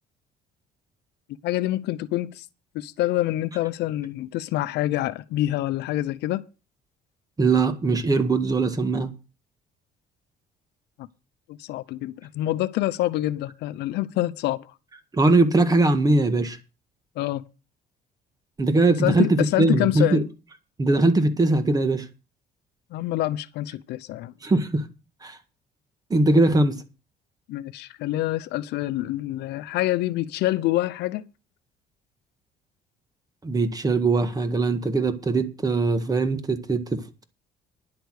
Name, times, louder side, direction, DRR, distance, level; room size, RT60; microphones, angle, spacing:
voice 1, 1.4-2.4 2.7-6.4 11.0-11.1 11.5-14.6 17.2-17.4 19.0-20.2 22.9-24.3 27.5-31.2, left 15 dB, 80° left, 0.7 m, -26 dB
voice 2, 7.4-9.1 15.1-16.6 18.6-20.2 20.8-22.1 24.4-24.8 25.2-25.4 26.1-26.8 33.4-37.2, right 2 dB, 20° right, 1.8 m, -21 dB
10.5 x 8.1 x 6.5 m
cardioid pair, 110°, 17 cm